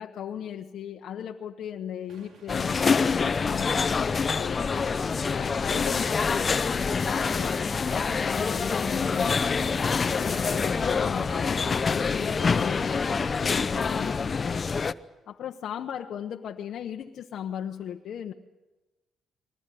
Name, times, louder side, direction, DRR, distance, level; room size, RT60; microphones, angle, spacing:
voice 1, 0.0-9.6 10.1-14.6 15.3-18.3, left 9 dB, 70° left, 2 dB, 1.0 m, -37 dB
sound 1, 1.9-11.9, right 4 dB, 65° right, 3.3 m, -55 dB
sound 2, 2.5-14.9, left 5 dB, 35° left, 0.8 m, -26 dB
23.0 x 19.5 x 9.3 m, 1.1 s
cardioid pair, 90°, 0 cm